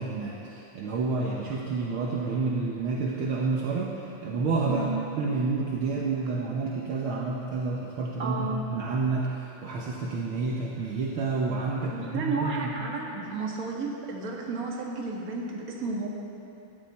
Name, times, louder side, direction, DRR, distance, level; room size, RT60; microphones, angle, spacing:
voice 1, 0.0-4.8 5.1-12.7, right 3 dB, 70° right, -3 dB, 1.3 m, -29 dB
voice 2, 8.2-8.6 11.8-16.1, right 3 dB, 35° right, -2 dB, 1.6 m, -32 dB
17.0 x 12.5 x 4.2 m, 2.8 s
omnidirectional pair, 3.7 m